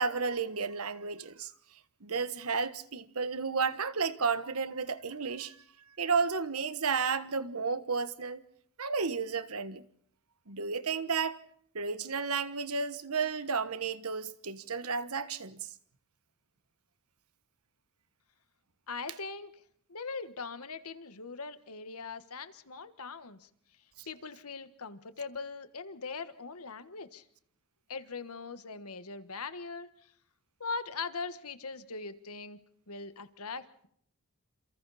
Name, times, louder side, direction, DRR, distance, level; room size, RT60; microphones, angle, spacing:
voice 1, 0.0-1.5 2.0-5.6 6.0-8.4 8.8-9.8 10.5-11.4 11.7-15.7 24.0-24.1, right 5 dB, 75° right, 1.3 m, -32 dB
voice 2, 18.9-19.5 19.9-23.5 24.0-27.2 27.9-30.1 30.6-32.6 32.9-33.9, left 4 dB, 80° left, 1.5 m, -41 dB
28.5 x 28.0 x 4.2 m
head